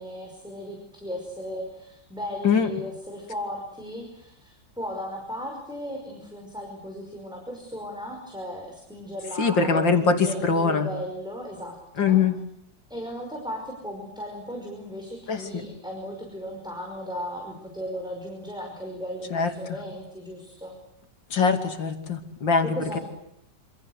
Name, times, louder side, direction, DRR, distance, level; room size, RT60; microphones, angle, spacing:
voice 1, 0.0-12.2 12.9-20.8 22.7-23.0, equal, ahead, 2 dB, 5.5 m, -36 dB
voice 2, 9.4-10.9 12.0-12.4 15.3-15.6 19.3-19.5 21.3-23.0, left 5 dB, 85° left, 6 dB, 3.4 m, -22 dB
27.5 x 26.0 x 8.2 m, 0.74 s
omnidirectional pair, 2.0 m